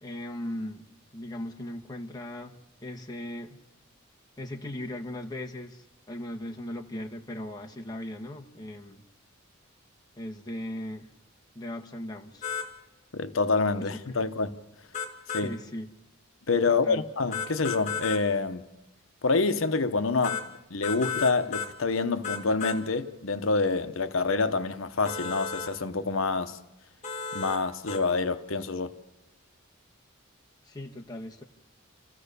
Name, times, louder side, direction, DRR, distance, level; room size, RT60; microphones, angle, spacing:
voice 1, 0.0-3.6 4.4-9.0 10.2-11.1 11.5-12.5 13.8-14.0 15.4-15.9 16.7-17.0 30.7-31.4, left 1 dB, 20° left, 1.5 m, -38 dB
sound 1, 12.4-12.7 14.9-15.5 17.3-18.2 20.2-20.5 20.8-21.7 22.2-22.8 25.0-25.7 27.0-27.6 27.9-28.0, left 6 dB, 35° left, 2.2 m, -33 dB
voice 2, 13.1-14.6 15.3-15.5 16.5-18.7 19.2-26.6 27.3-28.9, left 4 dB, 70° left, 1.0 m, -27 dB
28.5 x 14.5 x 6.8 m
head